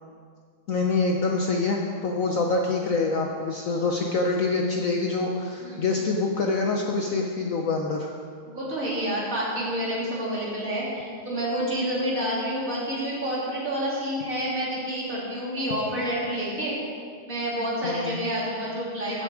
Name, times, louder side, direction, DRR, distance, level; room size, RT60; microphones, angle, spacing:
voice 1, 0.7-8.1 17.8-18.2, left 3 dB, 60° left, 1 dB, 1.0 m, -25 dB
voice 2, 8.5-16.8 17.2-19.2, equal, 45° right, -7 dB, 3.6 m, -28 dB
15.0 x 7.1 x 4.9 m, 2.1 s
omnidirectional pair, 2.0 m